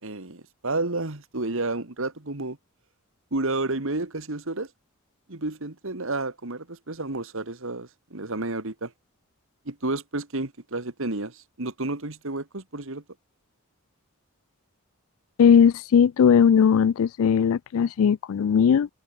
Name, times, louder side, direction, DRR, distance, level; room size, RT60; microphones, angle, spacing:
voice 1, 0.0-2.6 3.3-4.7 5.3-8.9 9.7-13.0, right 2 dB, 65° right, 2.0 m, -31 dB
voice 2, 15.4-18.9, left 7 dB, 65° left, 0.3 m, -18 dB
open air
head